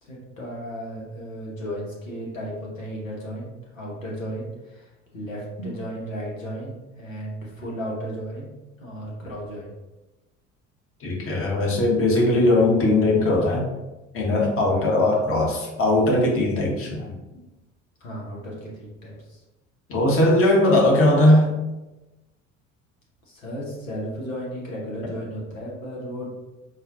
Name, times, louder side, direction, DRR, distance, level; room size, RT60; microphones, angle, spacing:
voice 1, 0.0-8.5 8.8-9.7 18.0-19.4 23.3-26.3, equal, 85° left, -4 dB, 1.0 m, -34 dB
voice 2, 11.0-13.6 14.1-17.2 19.9-21.5, left 1 dB, 35° left, -2 dB, 1.1 m, -19 dB
4.0 x 2.2 x 2.7 m, 1.1 s
figure-of-eight pair, 60°, 39 cm